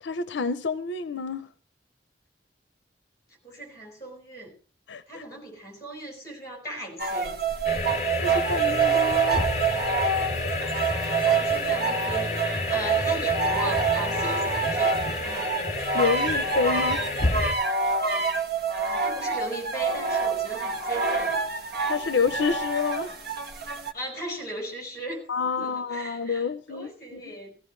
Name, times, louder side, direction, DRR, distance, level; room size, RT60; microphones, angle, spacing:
voice 1, 0.0-1.5 4.9-5.2 8.2-9.4 15.9-17.0 21.9-23.1 25.3-27.4, left 5 dB, 80° left, 0.5 m, -28 dB
voice 2, 3.4-4.5 5.1-7.4 11.2-15.0 18.8-21.4 23.9-25.3 25.6-27.5, right 1 dB, 20° left, 5.4 m, -38 dB
sound 1, 7.0-23.9, right 5 dB, 55° right, 1.3 m, -27 dB
sound 2, 7.6-17.5, left 2 dB, 40° left, 2.7 m, -29 dB
16.0 x 16.0 x 3.2 m
head